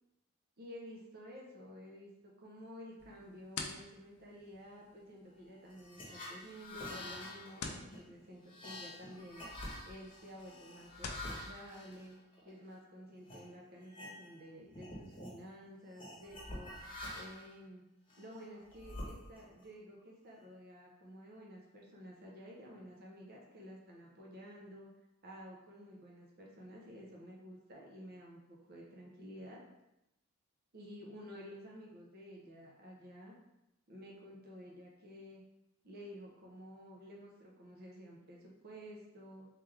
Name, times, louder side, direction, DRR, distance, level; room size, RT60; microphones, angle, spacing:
voice 1, 0.6-9.4 9.8-12.2 12.4-16.7 17.1-17.8 18.2-24.9 25.2-29.6 30.7-33.3 33.9-35.4 35.8-39.5, equal, 45° right, -2 dB, 0.7 m, -52 dB
sound 1, 3.0-11.3, left 4 dB, 80° left, 0.5 m, -50 dB
sound 2, 5.7-12.7 13.2-13.4 13.8-14.5 14.7-15.4 16.0-17.5 18.1-19.6, left 1 dB, 25° left, 1.0 m, -47 dB
3.4 x 3.3 x 3.3 m, 0.90 s
head